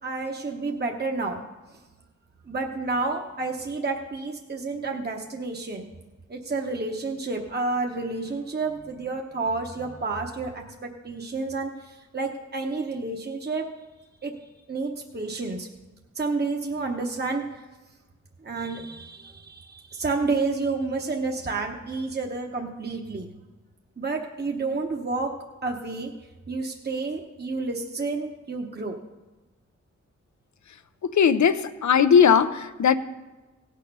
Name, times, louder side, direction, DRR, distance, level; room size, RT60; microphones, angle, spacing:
voice 1, 0.0-1.4 2.5-5.9 6.3-10.6 11.0-13.7 14.2-14.3 14.7-15.7 16.2-17.4 18.4-23.3 24.0-25.3 25.6-26.1 26.5-29.0, right 3 dB, 35° right, 1 dB, 1.0 m, -30 dB
voice 2, 31.0-32.9, left 7 dB, 80° left, 13 dB, 0.6 m, -19 dB
17.0 x 6.5 x 5.4 m, 1.1 s
wide cardioid pair, 65°, 29 cm